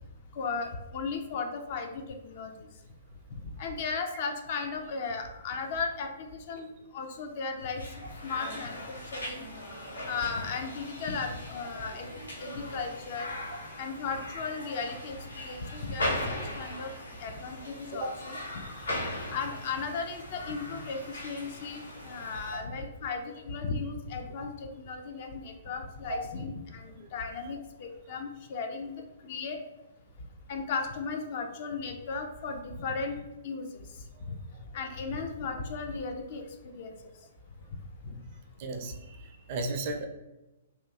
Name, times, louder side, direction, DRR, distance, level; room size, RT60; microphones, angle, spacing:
voice 1, 0.4-2.7 3.6-7.8 8.2-9.5 10.1-12.1 12.4-13.3 13.8-16.9 17.2-18.4 19.3-28.9 29.2-29.6 30.5-33.2 33.4-33.8 34.3-34.4 34.7-36.9 38.0-38.2, left 4 dB, 45° left, 4 dB, 0.4 m, -36 dB
sound 1, 7.6-22.6, left 1 dB, 80° left, 0.8 m, -39 dB
voice 2, 38.6-40.1, right 2 dB, 45° right, 4 dB, 0.4 m, -35 dB
2.8 x 2.5 x 2.3 m, 1.0 s
figure-of-eight pair, 120°, 0 cm